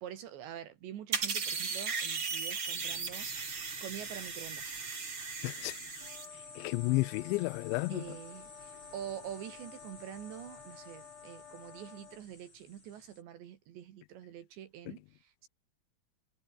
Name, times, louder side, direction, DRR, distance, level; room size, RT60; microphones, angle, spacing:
voice 1, 0.0-3.3 3.8-4.7 7.9-15.5, right 10 dB, 80° right, 4.4 m, -46 dB
sound 1, 1.1-6.3, right 5 dB, 30° right, 2.8 m, -37 dB
sound 2, 2.8-13.2, left 3 dB, 30° left, 7.3 m, -53 dB
voice 2, 5.4-5.8 6.6-8.2, left 23 dB, 85° left, 2.9 m, -32 dB
sound 3, 6.0-12.2, left 7 dB, 65° left, 6.0 m, -53 dB
omnidirectional pair, 5.2 m